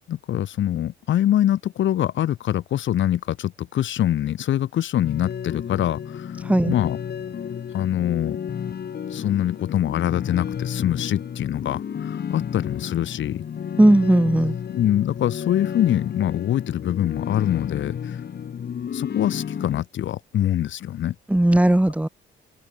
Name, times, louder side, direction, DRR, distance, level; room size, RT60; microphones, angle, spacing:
voice 1, 0.1-7.0 7.7-8.4 9.1-13.4 14.7-18.2 18.9-21.1, left 11 dB, 75° left, 3.4 m, -24 dB
sound 1, 5.0-19.8, left 8 dB, 55° left, 6.8 m, -32 dB
voice 2, 6.4-6.7 13.8-14.6 21.3-22.1, right 1 dB, 5° right, 2.1 m, -17 dB
cardioid pair, 90°, 20 cm